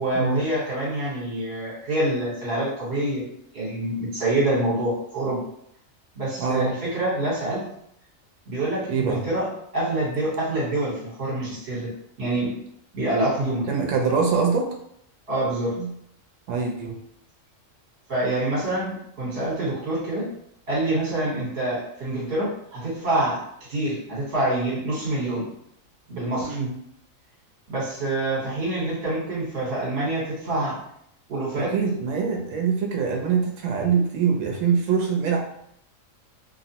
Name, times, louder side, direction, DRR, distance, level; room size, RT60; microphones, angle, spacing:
voice 1, 0.0-3.2 3.5-5.4 6.1-7.6 8.5-9.5 9.7-11.9 12.2-12.5 12.9-13.6 15.3-15.8 18.1-20.3 20.7-23.4 23.7-25.4 26.1-26.5 27.7-30.8 31.3-31.7, right 1 dB, 55° right, -6 dB, 1.3 m, -26 dB
voice 2, 6.4-6.7 8.9-9.2 13.7-14.7 15.8-15.9 16.5-17.0 26.4-26.7 31.6-35.4, right 5 dB, 70° right, 1 dB, 1.0 m, -24 dB
2.8 x 2.0 x 2.8 m, 0.71 s
omnidirectional pair, 1.4 m